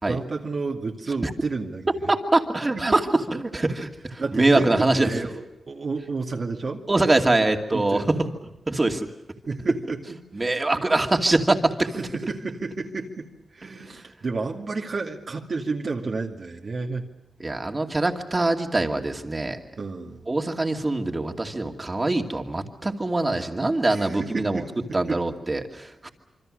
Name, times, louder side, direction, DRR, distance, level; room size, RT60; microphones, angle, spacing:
voice 1, 0.1-1.9 2.7-2.8 4.2-6.9 7.7-8.2 9.5-10.0 10.4-11.0 11.9-13.3 13.5-17.2 19.8-20.2 23.9-25.2, right 3 dB, 55° right, 0 dB, 2.3 m, -31 dB
voice 2, 2.1-5.1 6.9-8.2 8.7-9.1 10.3-11.9 17.4-19.6 20.3-24.6 24.9-26.1, right 2 dB, 30° right, 3 dB, 2.5 m, -23 dB
26.5 x 24.5 x 6.5 m, 0.94 s
cardioid pair, 75°, 0 cm